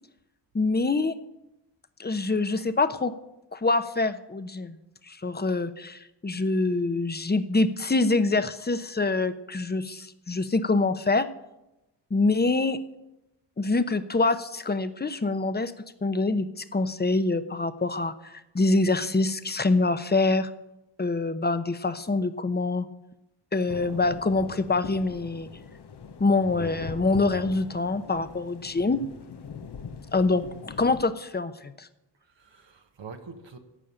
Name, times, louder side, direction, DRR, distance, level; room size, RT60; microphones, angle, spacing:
voice 1, 0.5-1.1 2.0-3.1 3.5-4.8 5.1-11.3 12.1-12.8 13.6-15.7 16.0-20.5 21.0-22.9 23.5-25.5 26.2-29.0 30.1-31.9, left 3 dB, 20° left, 0.9 m, -25 dB
sound 1, 23.7-31.0, left 6 dB, 60° left, 1.0 m, -41 dB
voice 2, 32.1-33.6, right 5 dB, 70° right, 1.4 m, -45 dB
15.0 x 5.4 x 8.9 m
cardioid pair, 55°, 45 cm